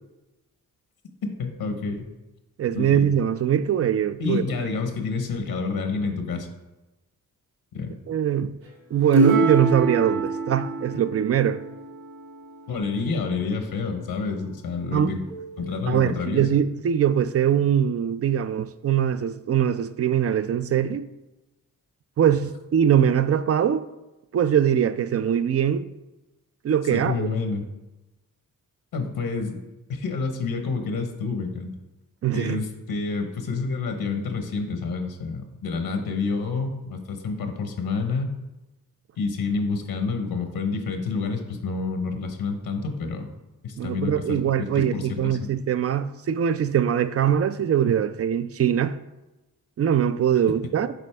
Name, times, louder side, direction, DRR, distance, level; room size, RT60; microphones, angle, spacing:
voice 1, 1.4-2.1 2.8-3.0 4.2-6.5 7.7-7.9 12.7-15.2 15.6-16.4 26.9-27.6 28.9-29.6 29.9-31.7 32.3-38.3 39.2-43.3 43.6-45.5, left 4 dB, 75° left, 0.9 m, -28 dB
voice 2, 2.6-4.4 8.1-8.5 8.9-11.6 14.9-15.1 15.9-21.0 22.2-23.9 24.3-25.9 26.6-27.3 32.2-32.6 43.8-48.9 49.8-50.9, right 9 dB, 40° right, 0.4 m, -22 dB
sound 1, 9.1-12.8 15.3-15.7, right 3 dB, 85° right, 1.1 m, -26 dB
7.4 x 4.1 x 3.3 m
cardioid pair, 55°, 36 cm